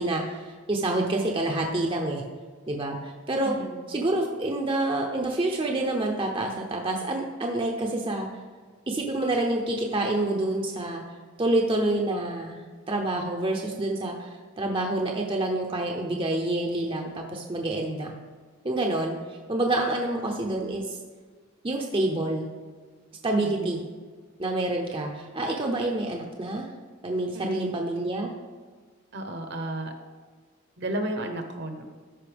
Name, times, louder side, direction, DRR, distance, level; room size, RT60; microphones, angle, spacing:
voice 1, 0.0-2.2 2.7-3.6 3.9-8.3 8.9-11.0 11.4-12.6 12.9-18.1 18.6-21.0 21.6-22.5 23.2-23.8 24.4-26.7 27.0-28.3, right 2 dB, 25° right, 1 dB, 0.6 m, -27 dB
voice 2, 3.4-3.8 23.4-23.7 27.3-27.7 29.1-29.9 30.8-31.9, right 1 dB, 50° right, 6 dB, 0.9 m, -33 dB
13.5 x 5.4 x 3.4 m, 1.5 s
head